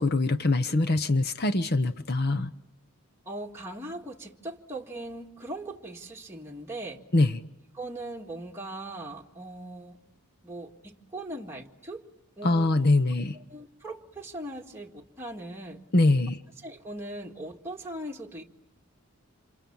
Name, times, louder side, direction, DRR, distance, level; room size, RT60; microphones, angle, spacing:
voice 1, 0.0-2.5 7.1-7.3 12.4-13.4 15.9-16.4, left 2 dB, 45° left, 0.9 m, -23 dB
voice 2, 3.3-7.0 7.7-10.0 10.4-12.1 12.4-12.7 13.3-15.8 16.6-18.4, right 1 dB, 10° right, 1.8 m, -39 dB
29.0 x 27.5 x 7.2 m
head